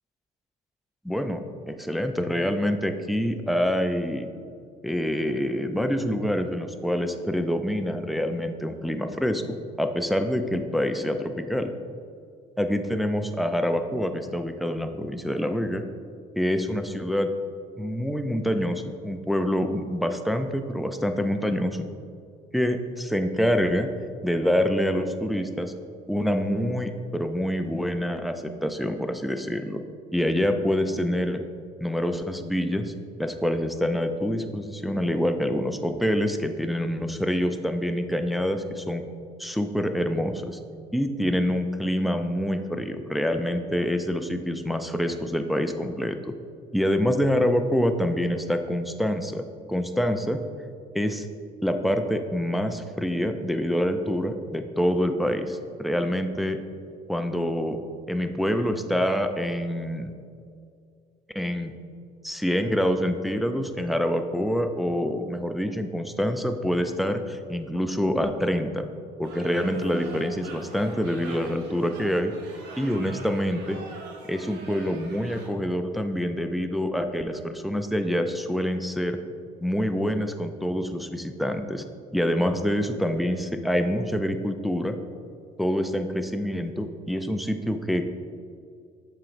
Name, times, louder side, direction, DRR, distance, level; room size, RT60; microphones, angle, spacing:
voice 1, 1.0-4.3 4.8-11.7 12.6-15.8 16.4-17.3 17.8-21.9 22.5-23.9 24.2-25.7 26.1-29.8 30.1-31.4 31.8-32.9 33.2-39.0 39.4-40.6 40.9-46.3 46.7-50.4 50.9-51.3 51.6-56.6 57.1-57.8 58.1-60.1 61.4-61.7 62.2-68.9 69.2-72.3 72.8-73.8 74.3-79.2 79.6-81.8 82.1-85.0 85.6-88.2, equal, ahead, 6 dB, 0.3 m, -26 dB
sound 1, 69.2-75.5, right 3 dB, 90° right, 0.9 m, -44 dB
7.4 x 5.0 x 2.5 m, 2.3 s
cardioid pair, 110°, 17 cm